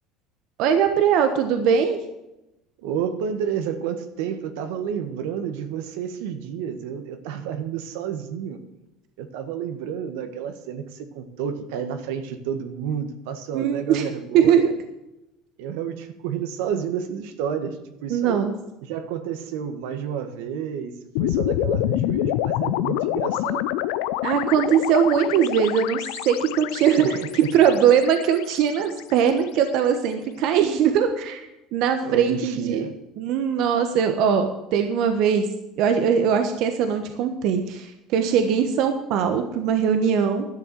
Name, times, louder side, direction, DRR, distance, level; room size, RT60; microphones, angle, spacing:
voice 1, 0.6-2.0 13.5-14.0 14.3-14.7 18.1-18.5 24.2-27.2 27.5-32.8 33.2-35.5 35.8-40.5, right 7 dB, 65° right, 7 dB, 1.2 m, -21 dB
voice 2, 2.8-8.6 9.2-14.7 15.6-18.5 18.8-23.7 27.0-27.5 32.0-33.0, right 8 dB, 80° right, 8 dB, 1.6 m, -30 dB
sound 1, 21.2-29.5, left 13 dB, 80° left, 0.6 m, -27 dB
12.0 x 6.9 x 7.6 m, 0.93 s
supercardioid pair, 115°, 0 cm